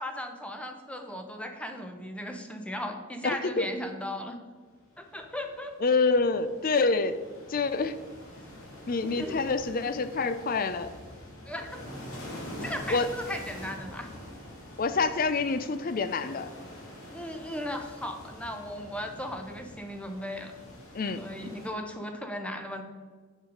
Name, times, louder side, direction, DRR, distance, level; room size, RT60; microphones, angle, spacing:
voice 1, 0.0-4.4 5.0-5.8 9.0-9.5 11.5-11.8 12.6-14.1 17.1-20.5 21.2-22.8, left 1 dB, 5° left, 5 dB, 0.7 m, -37 dB
voice 2, 3.2-3.6 5.8-7.2 7.5-8.0 8.8-10.9 12.9-13.1 14.8-16.5 20.9-21.2, left 4 dB, 40° left, 12 dB, 0.5 m, -27 dB
sound 1, 4.8-21.7, left 1 dB, 85° left, 2.2 m, -45 dB
7.3 x 6.5 x 5.1 m, 1.5 s
head